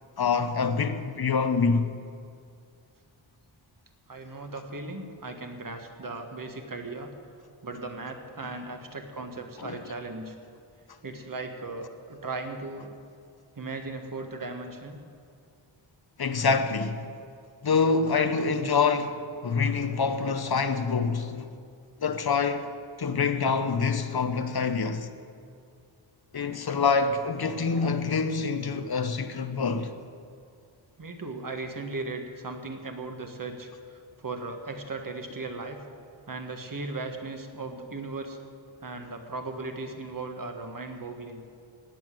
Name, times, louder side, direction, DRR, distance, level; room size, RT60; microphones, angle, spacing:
voice 1, 0.2-1.9 9.6-9.8 16.2-17.1 17.6-21.5 22.0-22.7 23.0-25.1 26.3-29.9, left 5 dB, 50° left, 0.9 m, -26 dB
voice 2, 4.1-7.1 7.6-10.3 11.0-12.9 13.5-15.0 31.0-35.8 36.3-38.4 38.8-41.4, right 3 dB, 45° right, 1.7 m, -37 dB
17.0 x 9.5 x 7.7 m
wide cardioid pair, 115°, 48 cm